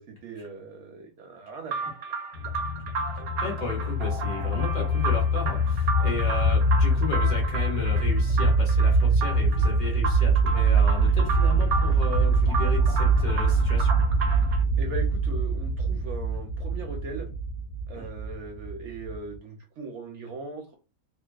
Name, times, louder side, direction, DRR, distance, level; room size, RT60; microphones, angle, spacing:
voice 1, 0.0-1.7 4.4-4.5 14.8-17.3 17.9-20.7, right 3 dB, 65° right, 3 dB, 0.7 m, -39 dB
sound 1, 1.7-14.6, right 4 dB, 85° right, 1.0 m, -34 dB
sound 2, 2.3-19.4, right 2 dB, 75° left, 0.9 m, -24 dB
voice 2, 3.4-13.9, left 3 dB, 50° left, -1 dB, 0.6 m, -34 dB
2.5 x 2.1 x 2.3 m, 0.31 s
omnidirectional pair, 1.5 m